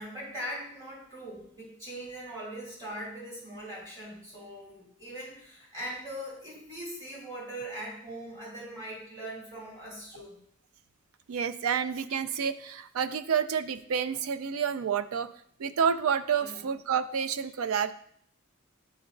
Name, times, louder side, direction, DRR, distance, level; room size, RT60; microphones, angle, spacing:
voice 1, 0.0-10.3 16.4-16.7, right 1 dB, 20° right, -7 dB, 2.6 m, -41 dB
voice 2, 11.3-15.3 15.6-17.9, right 7 dB, 90° right, 12 dB, 0.4 m, -29 dB
10.5 x 3.9 x 2.6 m, 0.66 s
head